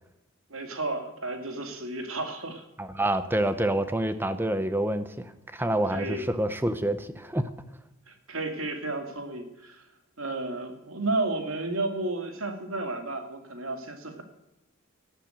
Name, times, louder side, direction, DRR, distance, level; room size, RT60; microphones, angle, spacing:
voice 1, 0.5-2.6 5.9-6.2 8.1-9.8 10.2-14.2, right 2 dB, 65° right, 5 dB, 2.5 m, -32 dB
voice 2, 2.8-7.5, right 1 dB, 10° right, 11 dB, 0.8 m, -27 dB
12.0 x 11.5 x 9.0 m, 0.89 s
head